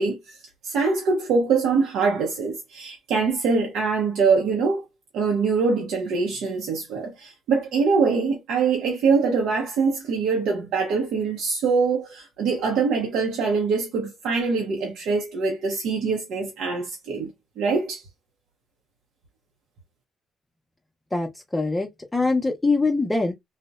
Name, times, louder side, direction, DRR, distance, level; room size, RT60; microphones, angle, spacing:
voice 1, 0.0-4.9 5.1-17.3 17.6-18.0, right 4 dB, 85° right, 0.6 m, -23 dB
voice 2, 21.1-23.3, left 3 dB, 15° left, 0.5 m, -23 dB
2.7 x 2.0 x 2.2 m
cardioid pair, 90°, 0 cm